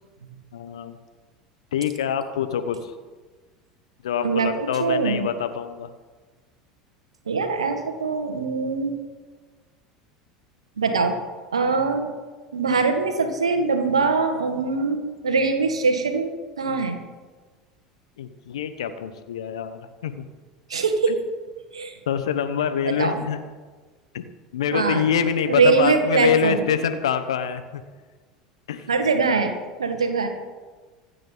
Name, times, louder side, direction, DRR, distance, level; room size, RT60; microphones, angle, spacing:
voice 1, 0.5-1.0 1.7-2.9 4.0-5.9 18.2-20.3 22.1-23.4 24.1-24.3 24.5-27.8 28.7-28.9, left 8 dB, 75° left, 10 dB, 1.2 m, -25 dB
voice 2, 4.2-5.3 7.3-8.9 10.8-11.2 11.5-12.1 12.5-17.0 20.7-21.2 21.7-22.0 22.8-23.2 24.7-25.1 25.5-26.7 28.9-30.3, right 4 dB, 85° right, 6 dB, 1.8 m, -22 dB
25.5 x 9.1 x 4.0 m, 1.4 s
figure-of-eight pair, 75°, 3 cm